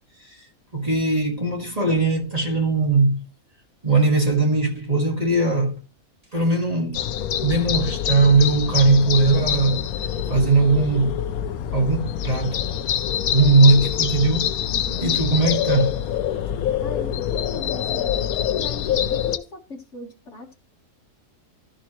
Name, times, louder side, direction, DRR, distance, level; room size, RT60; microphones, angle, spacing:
voice 1, 0.7-3.2 3.8-5.8 6.3-7.0 7.4-9.9 10.3-11.2 11.7-12.6 13.3-14.5 15.0-16.0, right 3 dB, 25° right, 1.9 m, -19 dB
sound 1, 6.9-19.4, left 10 dB, 75° left, 1.1 m, -25 dB
voice 2, 14.7-15.0 16.8-18.3 18.6-19.6 19.9-20.5, left 2 dB, 50° left, 1.6 m, -39 dB
13.0 x 6.9 x 3.0 m
omnidirectional pair, 1.6 m